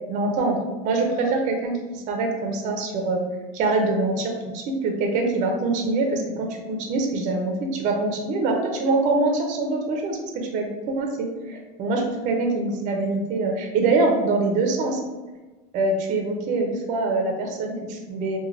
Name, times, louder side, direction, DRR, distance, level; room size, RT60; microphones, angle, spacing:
voice 1, 0.1-3.2 3.5-15.0 15.7-18.4, right 3 dB, 35° right, 2 dB, 0.5 m, -24 dB
3.1 x 2.2 x 2.4 m, 1.2 s
supercardioid pair, 145°, 21 cm